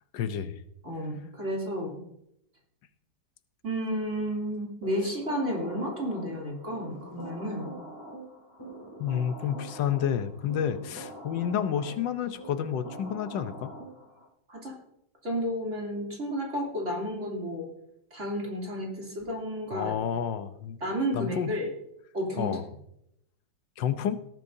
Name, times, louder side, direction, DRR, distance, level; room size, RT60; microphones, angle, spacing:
voice 1, 0.1-0.6 9.0-13.7 19.7-20.8 21.1-21.5 22.4-22.7 23.8-24.2, left 8 dB, 85° left, 10 dB, 1.5 m, -30 dB
voice 2, 0.8-2.0 3.6-7.7 14.5-14.8 15.2-17.7 18.1-19.9 20.8-21.7 22.1-22.6, equal, 40° right, -2 dB, 3.4 m, -32 dB
sound 1, 4.8-14.3, right 1 dB, 15° left, 2.8 m, -44 dB
18.0 x 11.0 x 2.7 m, 0.78 s
omnidirectional pair, 1.9 m